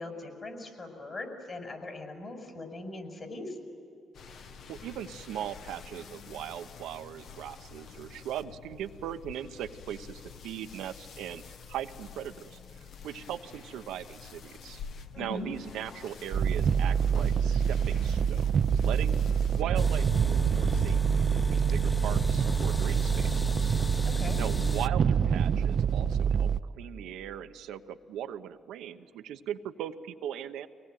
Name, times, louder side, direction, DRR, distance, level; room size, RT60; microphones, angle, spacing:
voice 1, 0.0-3.5 15.1-15.5 24.0-24.4, left 2 dB, 40° left, 5 dB, 5.7 m, -40 dB
sound 1, 4.1-19.6, left 6 dB, 65° left, 1.3 m, -48 dB
voice 2, 4.7-11.4 11.7-12.6 13.0-14.8 15.2-19.1 19.5-23.7 24.4-26.5 26.8-30.7, right 10 dB, 85° right, 8 dB, 1.0 m, -39 dB
sound 2, 16.3-26.6, right 7 dB, 55° right, 0.6 m, -26 dB
sound 3, 19.7-24.9, left 1 dB, 20° left, 0.5 m, -35 dB
24.5 x 19.0 x 9.3 m, 2.7 s
cardioid pair, 90°, 0 cm